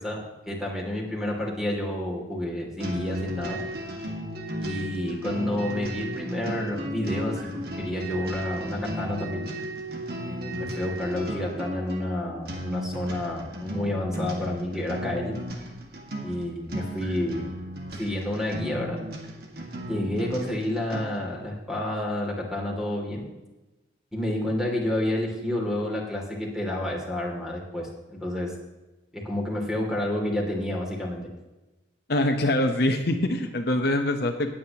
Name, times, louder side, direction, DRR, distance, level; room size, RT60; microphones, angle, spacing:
voice 1, 0.0-3.6 4.6-9.5 10.2-15.3 16.2-17.5 18.0-19.0 19.9-23.2 24.1-28.5 29.1-31.3, left 1 dB, ahead, -2 dB, 2.6 m, -29 dB
sound 1, 2.8-21.3, equal, 55° right, 1.7 m, -35 dB
voice 2, 32.1-34.5, left 1 dB, 55° left, 4 dB, 1.0 m, -24 dB
19.5 x 8.7 x 3.0 m, 1.1 s
head